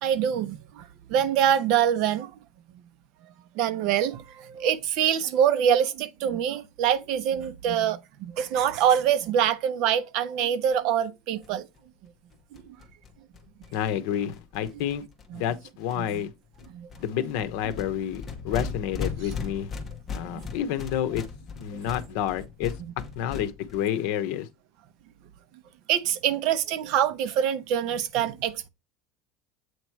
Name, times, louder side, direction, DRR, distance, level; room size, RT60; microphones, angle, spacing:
voice 1, 0.0-2.3 3.5-11.7 12.5-12.8 15.3-15.4 16.0-16.2 16.7-16.9 17.7-17.8 20.2-20.5 21.7-21.8 25.9-28.7, right 9 dB, 50° right, 0.7 m, -25 dB
sound 1, 11.4-11.5 11.8-11.9 12.1-12.2 12.3-15.5 15.9-16.2 16.5-23.8, left 5 dB, 15° left, 1.1 m, -38 dB
voice 2, 13.7-15.0 15.3-16.3 17.0-19.7 20.1-21.2 21.6-22.7 23.2-24.5, left 10 dB, 65° left, 0.9 m, -29 dB
8.0 x 3.0 x 4.5 m
cardioid pair, 175°, 0 cm